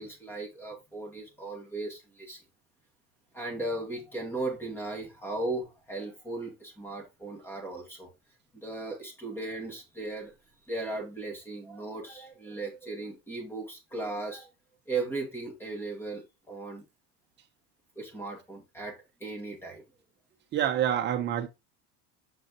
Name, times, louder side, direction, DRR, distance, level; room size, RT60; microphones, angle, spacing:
voice 1, 0.0-2.4 3.3-8.1 8.5-10.3 10.7-14.5 14.9-16.2 16.5-16.8 18.0-19.8, right 2 dB, 5° left, 2.0 m, -37 dB
voice 2, 20.5-21.5, right 10 dB, 30° right, 1.0 m, -27 dB
7.2 x 6.0 x 3.0 m
cardioid pair, 155°, 39 cm